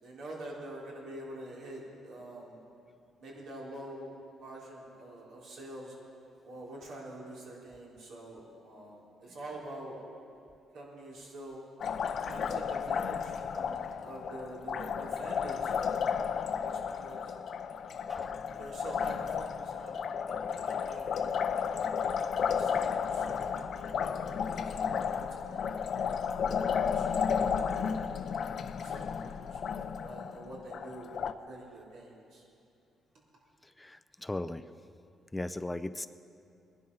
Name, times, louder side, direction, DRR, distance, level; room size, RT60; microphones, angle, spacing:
voice 1, 0.0-2.6 3.2-5.9 6.4-10.0 10.7-11.6 12.2-16.1 16.4-17.3 18.5-21.8 22.4-27.5 28.7-32.4, right 1 dB, 80° right, -5 dB, 4.5 m, -46 dB
Liquid, 11.8-31.3, left 6 dB, 60° left, 0.6 m, -33 dB
voice 2, 33.8-34.6 35.3-36.1, left 1 dB, 10° left, 12 dB, 0.5 m, -37 dB
21.0 x 11.5 x 5.7 m, 2.6 s
cardioid pair, 90°, 0 cm